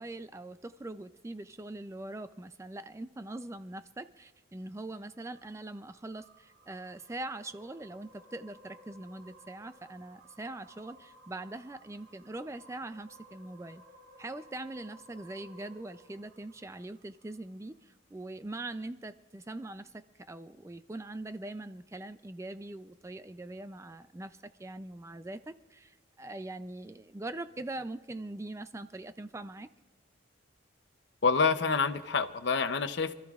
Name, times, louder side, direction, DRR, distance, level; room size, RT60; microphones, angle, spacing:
voice 1, 0.0-13.8 14.2-29.7, right 2 dB, 15° right, 11 dB, 0.3 m, -42 dB
sound 1, 5.1-17.6, right 1 dB, 90° right, 4.6 m, -58 dB
voice 2, 31.2-33.1, left 5 dB, 60° left, 11 dB, 0.6 m, -27 dB
27.0 x 13.5 x 2.4 m, 1.1 s
head